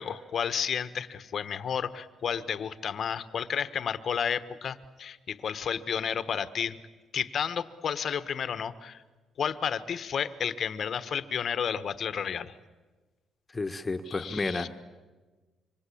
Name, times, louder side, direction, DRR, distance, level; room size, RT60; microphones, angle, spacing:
voice 1, 0.0-6.8 7.1-9.0 9.4-12.5 14.1-14.7, left 7 dB, 55° left, 12 dB, 1.3 m, -32 dB
voice 2, 13.5-14.8, left 3 dB, 25° left, 7 dB, 1.5 m, -32 dB
26.0 x 25.0 x 8.6 m, 1.3 s
cardioid pair, 90°, 0 cm